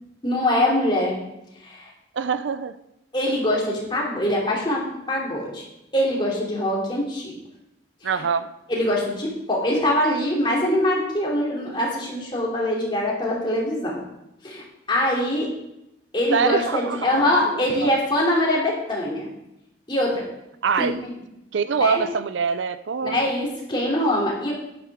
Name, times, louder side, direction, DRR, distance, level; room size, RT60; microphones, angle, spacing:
voice 1, 0.2-1.2 1.6-1.9 3.1-5.6 5.9-7.4 8.1-8.2 8.7-14.0 14.4-15.5 16.1-19.3 19.9-20.2 20.8-21.1 21.8-22.0 23.1-24.5, left 1 dB, 25° left, -3 dB, 2.9 m, -23 dB
voice 2, 2.1-2.7 8.0-8.5 16.3-17.9 20.6-20.9 21.5-23.2, right 6 dB, 80° right, 13 dB, 0.5 m, -24 dB
10.5 x 10.5 x 3.6 m, 0.86 s
head